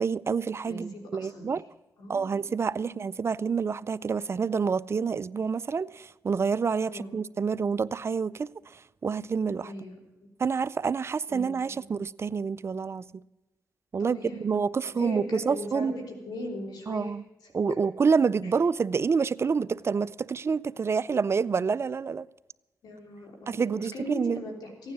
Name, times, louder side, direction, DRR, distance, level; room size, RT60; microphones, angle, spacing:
voice 1, 0.0-1.6 2.1-9.7 10.4-13.2 13.9-15.9 16.9-17.2 17.5-22.3 23.5-24.4, right 5 dB, 40° right, 0.4 m, -28 dB
voice 2, 0.6-1.5 2.0-2.3 2.8-3.1 6.8-7.1 9.6-10.0 11.3-11.9 14.0-14.5 14.8-17.2 18.4-18.5 22.8-24.9, left 1 dB, 80° left, 3.3 m, -39 dB
16.0 x 9.6 x 7.4 m
cardioid pair, 70°, 7 cm